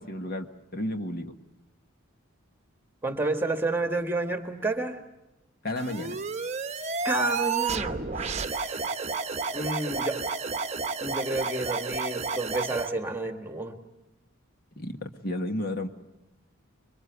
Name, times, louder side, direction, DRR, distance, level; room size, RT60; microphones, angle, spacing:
voice 1, 0.0-1.4 5.6-6.2 14.8-15.9, left 1 dB, 45° left, 6 dB, 1.6 m, -32 dB
voice 2, 3.0-5.0 7.0-9.0 9.5-10.2 11.0-13.8, right 2 dB, 10° right, 5 dB, 1.8 m, -30 dB
sound 1, 5.8-12.9, right 4 dB, 30° right, 1.0 m, -31 dB
27.0 x 24.0 x 8.1 m, 0.90 s
head